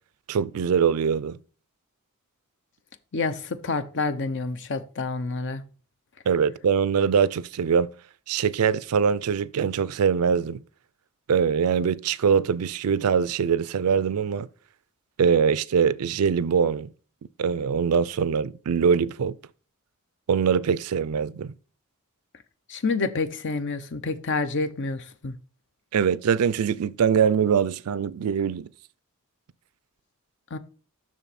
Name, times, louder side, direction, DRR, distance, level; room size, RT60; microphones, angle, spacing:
voice 1, 0.3-1.4 6.3-7.9 8.3-10.6 11.3-14.5 15.2-16.9 17.4-19.4 20.3-21.5 25.9-28.7, right 6 dB, 80° right, 0.4 m, -23 dB
voice 2, 3.1-5.6 22.7-25.4 30.5-30.6, left 3 dB, 60° left, 0.7 m, -28 dB
7.1 x 6.2 x 4.1 m
head